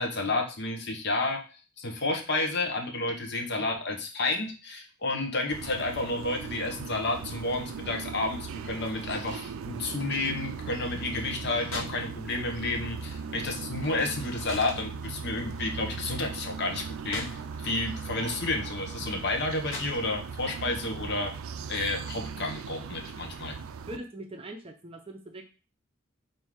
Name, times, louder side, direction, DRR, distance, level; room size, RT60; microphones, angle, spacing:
voice 1, 0.0-1.4 1.8-21.3 21.7-23.6, left 2 dB, 55° left, 3 dB, 0.8 m, -31 dB
sound 1, 5.5-24.0, right 5 dB, 85° right, 0.3 m, -39 dB
sound 2, 11.0-12.1 12.4-17.8 18.1-20.4, left 2 dB, 75° left, 1.1 m, -43 dB
voice 2, 23.9-25.4, right 1 dB, 25° right, 4 dB, 0.6 m, -41 dB
4.6 x 2.7 x 3.6 m, 0.34 s
head